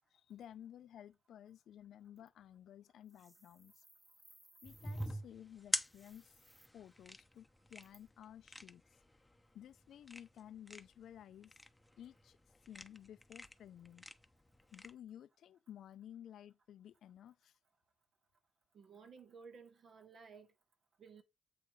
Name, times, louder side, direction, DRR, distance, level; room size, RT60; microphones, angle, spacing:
voice 1, 0.1-3.8 4.6-6.4 6.7-8.8 9.5-11.5 12.0-12.4 12.7-14.0 14.7-17.6, left 10 dB, 80° left, 0.6 m, -55 dB
sound 1, 3.0-5.1 5.8-6.7, right 1 dB, 10° right, 1.1 m, -65 dB
sound 2, 4.6-14.9, left 1 dB, 10° left, 0.8 m, -46 dB
voice 2, 18.7-20.5 21.0-21.2, right 5 dB, 60° right, 1.7 m, -56 dB
7.9 x 4.5 x 4.7 m
cardioid pair, 85°, 0 cm